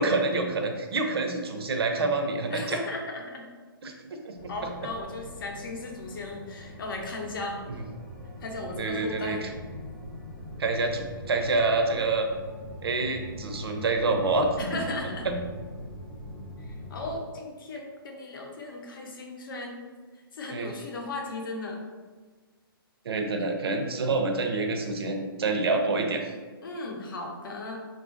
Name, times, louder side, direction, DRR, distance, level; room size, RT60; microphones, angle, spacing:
voice 1, 0.0-2.8 3.8-3.9 4.2-4.7 7.7-7.8 8.8-9.5 10.6-12.3 12.8-14.7 15.2-15.4 20.5-20.7 23.0-26.3, right 3 dB, 85° right, 4 dB, 0.6 m, -27 dB
voice 2, 2.5-3.4 4.5-7.6 8.4-9.4 14.6-15.2 16.6-19.8 20.3-21.8 26.6-27.8, left 2 dB, 60° left, 1 dB, 0.7 m, -36 dB
sound 1, 4.3-17.2, left 1 dB, 30° left, 0.7 m, -42 dB
3.8 x 2.4 x 2.4 m, 1.4 s
hypercardioid pair, 165°, 13 cm